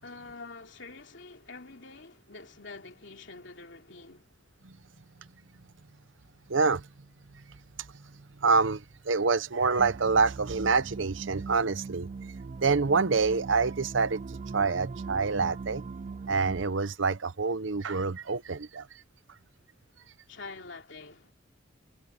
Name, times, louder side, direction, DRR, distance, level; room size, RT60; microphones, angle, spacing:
voice 1, 0.0-4.3 20.3-21.3, left 3 dB, 65° left, 3.0 m, -46 dB
voice 2, 6.5-6.9 8.4-12.1 12.6-14.2 14.5-15.8 16.3-18.9, right 4 dB, 75° right, 0.8 m, -26 dB
sound 1, 9.8-16.6, right 4 dB, 35° right, 0.3 m, -40 dB
head